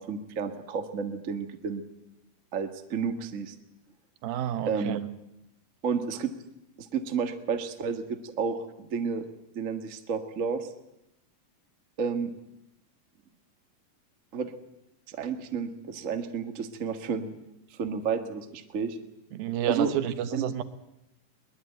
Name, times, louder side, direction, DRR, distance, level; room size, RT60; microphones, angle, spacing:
voice 1, 0.0-1.8 2.5-3.5 4.6-5.0 5.8-6.3 6.8-9.3 9.5-10.7 12.0-12.3 14.3-14.5 15.1-17.3 17.7-19.0 19.7-19.9 20.3-20.5, right 6 dB, 50° right, 7 dB, 0.9 m, -31 dB
voice 2, 4.2-5.0 19.3-20.6, right 11 dB, 75° right, 12 dB, 2.9 m, -30 dB
22.0 x 20.5 x 9.1 m, 0.86 s
omnidirectional pair, 4.3 m